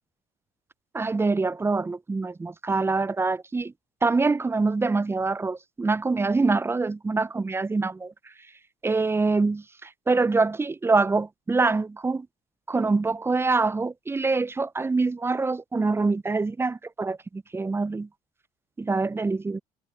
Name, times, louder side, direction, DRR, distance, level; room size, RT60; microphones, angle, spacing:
voice 1, 0.9-3.7 4.0-8.1 8.8-12.3 12.7-18.1 18.8-19.6, right 3 dB, 15° right, 0.4 m, -25 dB
hypercardioid pair, 60°, 16 cm